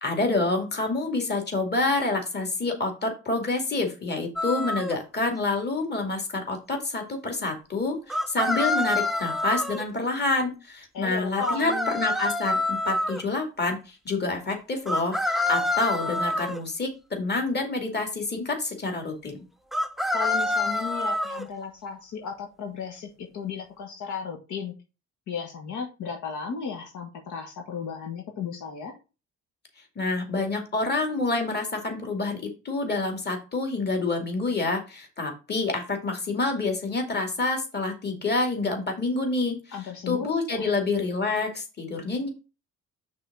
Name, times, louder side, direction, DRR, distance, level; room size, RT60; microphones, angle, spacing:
voice 1, 0.0-19.4 30.0-39.6 40.1-42.3, left 3 dB, 35° left, 3 dB, 2.6 m, -28 dB
sound 1, 4.4-5.0 8.1-9.8 11.4-13.2 14.9-16.6 19.7-21.4, left 1 dB, ahead, 0.6 m, -27 dB
voice 2, 10.9-11.9 20.1-24.7 25.3-29.0 39.7-40.7, left 6 dB, 75° left, 2 dB, 1.6 m, -35 dB
6.0 x 3.8 x 6.1 m, 0.31 s
cardioid pair, 90°, 30 cm